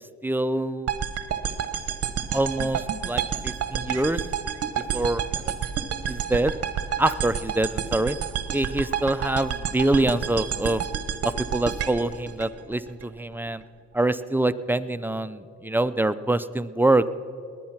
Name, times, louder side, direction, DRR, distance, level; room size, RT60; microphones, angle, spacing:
voice 1, 0.2-0.9 2.3-4.2 4.9-5.2 6.1-6.5 7.0-8.2 8.5-10.8 11.2-13.6 13.9-17.1, right 2 dB, 5° right, 12 dB, 0.4 m, -25 dB
sound 1, 0.9-13.1, right 8 dB, 55° right, 1.0 m, -29 dB
20.0 x 9.5 x 5.9 m, 2.5 s
cardioid pair, 90°, 30 cm